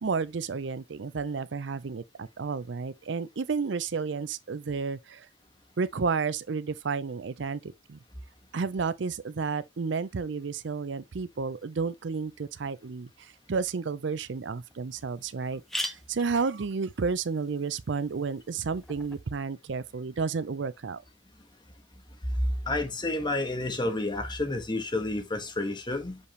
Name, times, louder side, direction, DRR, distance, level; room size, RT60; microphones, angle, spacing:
voice 1, 0.0-5.3 5.8-8.0 8.5-21.0, right 5 dB, 70° right, 0.5 m, -31 dB
sound 1, 14.1-14.2 14.7-14.8 15.0-15.1 15.4-19.2, equal, ahead, 0.8 m, -41 dB
voice 2, 22.7-26.2, left 2 dB, 25° left, 1.5 m, -30 dB
6.7 x 5.3 x 3.2 m
head